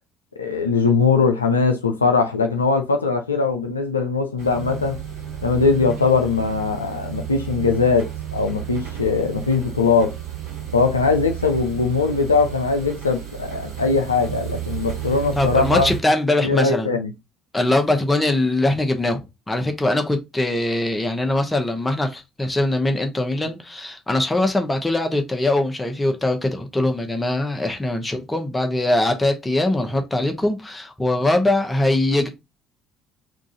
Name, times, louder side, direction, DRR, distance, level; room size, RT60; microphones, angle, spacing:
voice 1, 0.4-5.0 5.4-10.1 10.7-15.9 16.4-17.1, left 4 dB, 80° left, 0.4 m, -20 dB
sound 1, 4.4-16.0, right 11 dB, 65° right, 1.3 m, -32 dB
voice 2, 15.4-17.0 17.5-19.2 19.5-32.3, left 1 dB, 15° left, 0.9 m, -22 dB
3.7 x 2.5 x 3.9 m
figure-of-eight pair, 50°, 0 cm